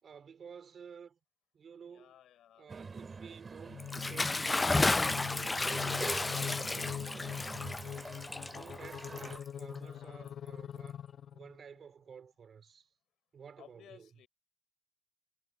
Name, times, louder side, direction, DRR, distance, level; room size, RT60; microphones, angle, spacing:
voice 1, 0.0-1.2 1.5-2.2 2.6-3.8 4.1-7.5 8.4-11.0 11.3-12.9 13.3-14.2, right 7 dB, 50° right, 4.4 m, -53 dB
voice 2, 1.9-2.8 9.8-10.4 13.6-14.3, left 11 dB, 75° left, 6.5 m, -58 dB
sound 1, 2.7-9.4, right 4 dB, 35° right, 3.3 m, -46 dB
sound 2, 3.7-11.6, left 9 dB, 60° left, 0.8 m, -43 dB
Bathtub (filling or washing) / Splash splatter, 3.8-9.7, left 2 dB, 20° left, 0.5 m, -33 dB
cardioid pair, 90°, 0 cm